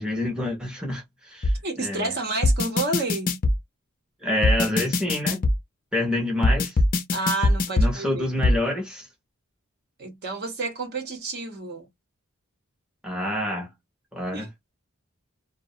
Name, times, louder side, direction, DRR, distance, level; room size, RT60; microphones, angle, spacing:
voice 1, 0.0-1.5 1.8-2.1 4.2-5.4 5.9-6.8 7.8-9.1 13.0-13.7 14.1-14.5, left 1 dB, 5° right, 0.6 m, -27 dB
sound 1, 1.4-1.6 2.4-3.6 4.4-5.6 6.4-7.9 8.4-8.6, left 2 dB, 40° left, 0.4 m, -21 dB
voice 2, 1.6-3.4 7.1-8.3 10.0-11.9 14.3-14.5, right 3 dB, 50° right, 0.8 m, -30 dB
2.3 x 2.1 x 2.7 m
head